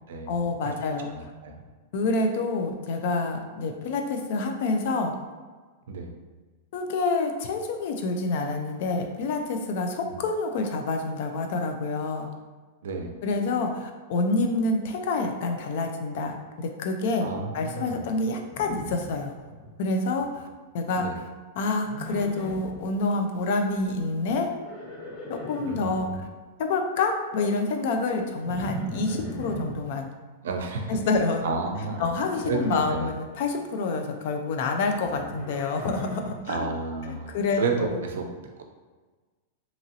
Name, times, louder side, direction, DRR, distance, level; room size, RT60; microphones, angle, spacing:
voice 1, 0.3-1.3 1.9-5.1 6.7-12.3 13.2-19.3 19.8-20.5 20.7-21.1 21.6-24.5 25.3-26.3 26.6-30.1 30.9-31.5 32.0-36.7 37.1-38.0, left 3 dB, 45° left, 4 dB, 0.4 m, -27 dB
voice 2, 1.1-1.6 5.9-6.1 10.1-10.2 12.8-13.1 17.2-18.1 21.0-21.1 25.6-26.2 30.4-31.0 31.4-32.1 32.4-33.1 36.5-38.3, right 4 dB, 90° right, 3 dB, 0.5 m, -31 dB
Livestock farm animals working animals, 18.5-19.7 20.0-20.5 21.8-22.8 24.4-26.1 28.4-29.8 31.8-32.9 34.7-36.4, equal, 20° left, 0.7 m, -39 dB
2.9 x 2.5 x 2.7 m, 1.4 s
supercardioid pair, 175°, 0 cm